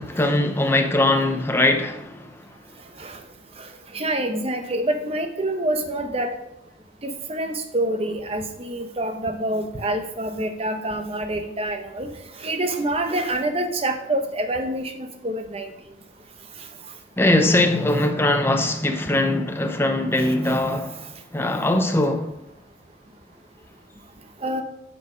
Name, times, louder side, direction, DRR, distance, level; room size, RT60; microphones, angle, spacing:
voice 1, 0.0-2.4 17.2-21.1 21.3-22.4, left 1 dB, 10° left, 0.6 m, -21 dB
voice 2, 3.6-6.3 7.0-12.1 12.4-15.7 20.4-20.5 24.4-24.6, right 1 dB, 30° right, 0.8 m, -26 dB
8.1 x 4.8 x 5.0 m
head